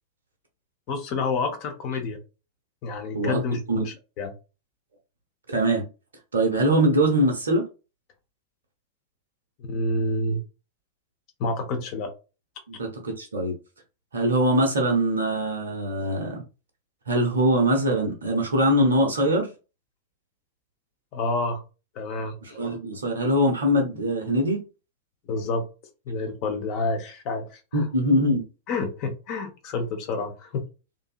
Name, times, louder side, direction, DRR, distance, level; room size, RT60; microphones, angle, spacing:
voice 1, 0.9-2.2 2.8-4.3 9.6-10.4 11.4-12.1 21.1-21.6 21.9-22.3 25.3-25.6 26.1-27.8 28.7-30.6, left 3 dB, 40° left, 0.8 m, -28 dB
voice 2, 3.1-3.8 5.5-5.9 6.3-7.7 12.7-13.6 14.1-16.4 17.1-19.5 22.4-24.6 27.7-28.4, right 1 dB, 70° right, 0.7 m, -23 dB
2.6 x 2.6 x 2.4 m
figure-of-eight pair, 90°, 0 cm